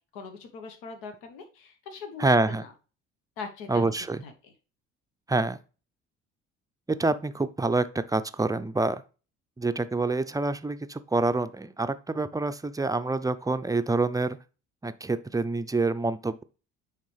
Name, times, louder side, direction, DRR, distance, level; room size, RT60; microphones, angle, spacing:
voice 1, 0.1-2.7 3.4-3.9 4.2-4.5, left 5 dB, 75° left, 6 dB, 1.1 m, -41 dB
voice 2, 2.2-2.6 3.7-4.2 5.3-5.6 6.9-9.0 9.6-14.4 14.8-16.4, right 3 dB, 10° right, 11 dB, 0.5 m, -27 dB
9.8 x 3.6 x 3.3 m, 0.34 s
hypercardioid pair, 55°, 35 cm